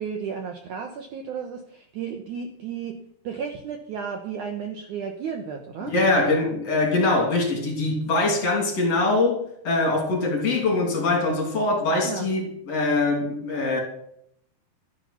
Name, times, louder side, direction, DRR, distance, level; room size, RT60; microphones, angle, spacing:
voice 1, 0.0-3.0 3.2-5.9 12.0-12.3, right 6 dB, 65° right, 2.1 m, -33 dB
voice 2, 5.8-13.8, left 2 dB, 45° left, 3.8 m, -23 dB
12.5 x 9.9 x 5.8 m
omnidirectional pair, 4.6 m